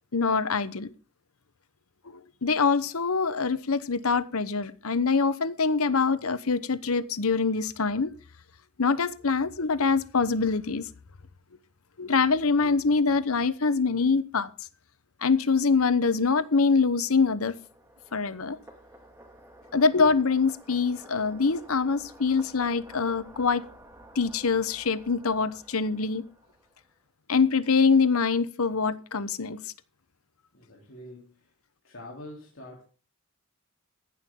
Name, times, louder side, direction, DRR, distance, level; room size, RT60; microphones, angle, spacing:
voice 1, 0.1-0.9 2.4-8.1 8.8-10.8 12.0-14.5 15.2-17.5 18.1-18.6 19.7-23.7 24.2-26.2 27.3-29.6, left 4 dB, 80° left, 1.0 m, -24 dB
sound 1, 16.5-26.9, right 1 dB, 15° right, 2.1 m, -52 dB
voice 2, 30.5-31.5 31.8-32.8, left 1 dB, 60° left, 3.5 m, -45 dB
15.5 x 11.0 x 3.8 m
head